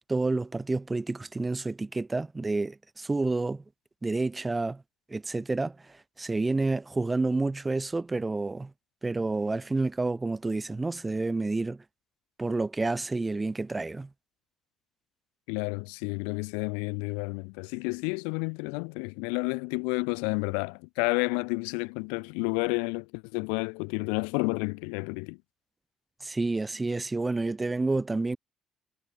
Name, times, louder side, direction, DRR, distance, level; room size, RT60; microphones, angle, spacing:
voice 1, 0.1-3.6 4.0-4.8 5.1-5.8 6.2-8.7 9.0-11.8 12.4-14.1 26.2-28.4, right 3 dB, 25° right, 0.8 m, -29 dB
voice 2, 15.5-25.4, left 40 dB or more, 80° left, 0.4 m, -30 dB
hypercardioid pair, 50°, 0 cm